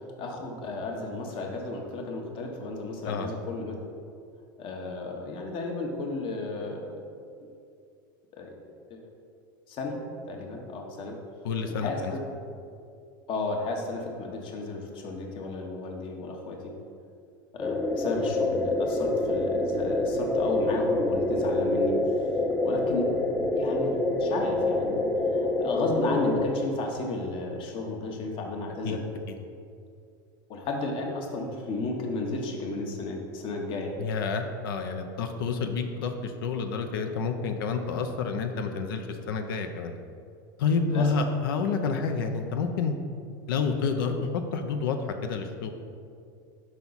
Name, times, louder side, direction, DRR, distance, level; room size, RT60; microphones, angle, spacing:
voice 1, 0.2-3.8 4.6-7.0 8.4-8.5 8.9-9.1 9.7-10.0 10.2-11.2 11.8-12.2 13.3-16.7 17.5-22.3 22.6-23.9 24.2-25.1 25.3-29.0 30.5-33.9 40.9-41.1, left 2 dB, 50° left, 1 dB, 1.1 m, -33 dB
voice 2, 11.4-12.1 28.8-29.0 29.3-29.4 34.0-39.9 40.6-42.9 43.5-45.0 45.2-45.7, left 5 dB, 80° left, 6 dB, 0.5 m, -29 dB
sound 1, 17.6-26.5, left 2 dB, 10° left, 0.6 m, -26 dB
5.5 x 4.7 x 4.0 m, 2.4 s
supercardioid pair, 105°, 12 cm